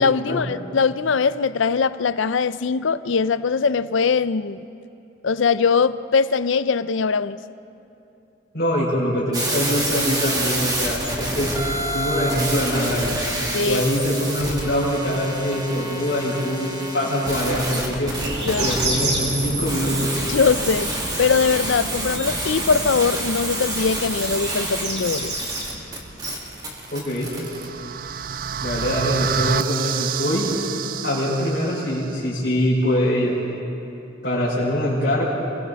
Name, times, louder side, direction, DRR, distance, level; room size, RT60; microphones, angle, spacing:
voice 1, 0.0-4.6 5.2-7.4 13.5-13.8 18.5-18.7 20.3-20.9 21.2-25.4, left 5 dB, 80° left, 15 dB, 0.5 m, -21 dB
voice 2, 8.5-11.5 11.9-13.1 13.6-18.1 18.6-20.1 26.9-27.3 28.6-30.5 31.0-33.3 34.2-35.2, equal, 55° left, -9 dB, 5.4 m, -23 dB
sound 1, 9.3-27.7, right 1 dB, 20° right, 2.4 m, -28 dB
sound 2, 18.2-26.7, right 2 dB, 65° right, 5.2 m, -31 dB
sound 3, 27.0-32.1, right 7 dB, 45° right, 0.4 m, -28 dB
29.5 x 22.0 x 4.1 m, 2.7 s
head